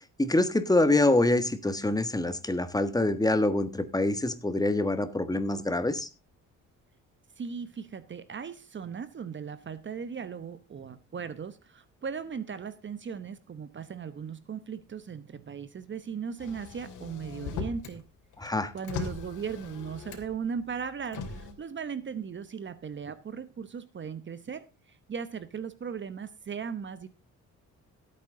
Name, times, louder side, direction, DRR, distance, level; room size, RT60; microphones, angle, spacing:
voice 1, 0.0-6.1 18.4-18.7, left 2 dB, 10° left, 12 dB, 1.4 m, -25 dB
voice 2, 7.4-18.1 18.7-27.1, right 6 dB, 40° right, 14 dB, 1.0 m, -38 dB
Motor vehicle (road), 16.4-18.0 18.3-20.4 21.0-21.5, left 5 dB, 80° left, 2.9 m, -39 dB
15.5 x 8.7 x 3.8 m, 0.29 s
cardioid pair, 90°, 30 cm